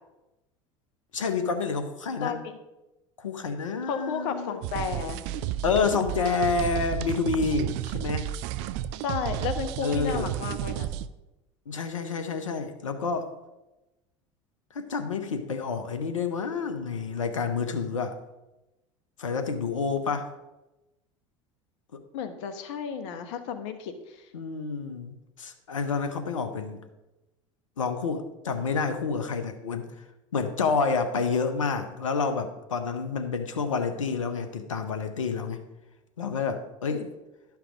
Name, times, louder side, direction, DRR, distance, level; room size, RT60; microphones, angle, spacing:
voice 1, 1.1-2.4 3.2-4.6 5.6-8.3 9.8-10.3 11.7-13.3 14.7-18.2 19.2-20.3 21.9-22.0 24.3-26.8 27.8-29.9 30.3-35.6 36.2-37.1, left 5 dB, 90° left, 8 dB, 0.8 m, -29 dB
voice 2, 2.2-2.6 3.9-5.2 9.0-10.9 22.1-24.2 36.9-37.1, left 7 dB, 70° left, 9 dB, 1.2 m, -33 dB
sound 1, 4.6-11.1, right 12 dB, 60° right, 0.5 m, -32 dB
11.5 x 5.9 x 5.0 m, 0.99 s
hypercardioid pair, 80°, 16 cm